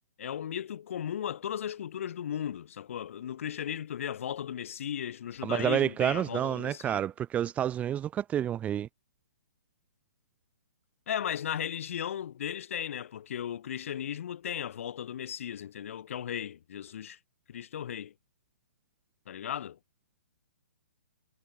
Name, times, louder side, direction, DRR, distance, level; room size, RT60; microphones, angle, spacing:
voice 1, 0.2-7.0 11.1-17.2 17.5-18.1 19.3-19.8, left 9 dB, 55° left, 3.7 m, -36 dB
voice 2, 5.4-8.9, right 10 dB, 15° right, 0.9 m, -29 dB
hypercardioid pair, 130°, 8 cm